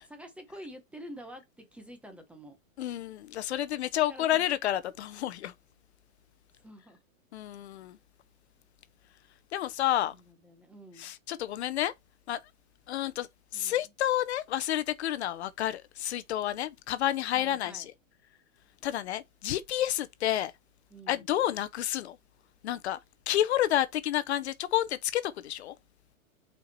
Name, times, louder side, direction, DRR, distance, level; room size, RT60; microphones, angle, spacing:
voice 1, 0.0-2.6 3.9-4.5 6.6-7.0 10.1-11.1 13.5-13.8 17.3-17.9 20.9-21.3, equal, 5° right, 0.7 m, -48 dB
voice 2, 2.8-5.5 7.3-8.0 9.5-10.1 11.0-11.9 12.3-12.4 12.9-13.3 13.5-17.9 18.8-20.5 21.1-22.2 22.6-23.0 23.3-25.7, left 12 dB, 55° left, 0.7 m, -30 dB
5.6 x 4.5 x 4.1 m
hypercardioid pair, 150°, 41 cm